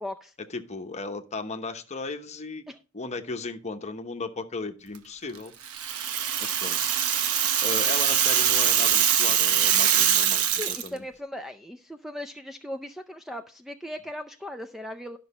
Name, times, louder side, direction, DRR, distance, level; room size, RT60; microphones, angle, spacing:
voice 1, 0.0-0.3 2.7-2.8 10.6-15.2, left 1 dB, ahead, 7 dB, 0.4 m, -38 dB
voice 2, 0.5-2.6 2.9-5.5 6.4-6.8 7.6-11.1, left 3 dB, 30° left, 7 dB, 0.9 m, -35 dB
Rattle (instrument), 5.6-10.9, right 9 dB, 85° right, 0.9 m, -23 dB
11.5 x 6.0 x 4.2 m, 0.35 s
head